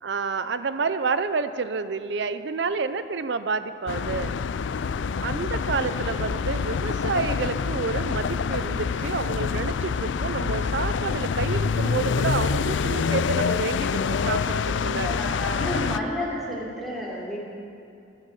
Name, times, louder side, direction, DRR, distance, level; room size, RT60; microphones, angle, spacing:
voice 1, 0.0-4.4 5.2-15.2, right 4 dB, 65° right, 12 dB, 0.5 m, -29 dB
sound 1, 3.9-16.0, left 5 dB, 75° left, 0.4 m, -26 dB
voice 2, 14.8-17.4, left 1 dB, ahead, -5 dB, 3.3 m, -31 dB
13.0 x 12.5 x 7.6 m, 2.6 s
head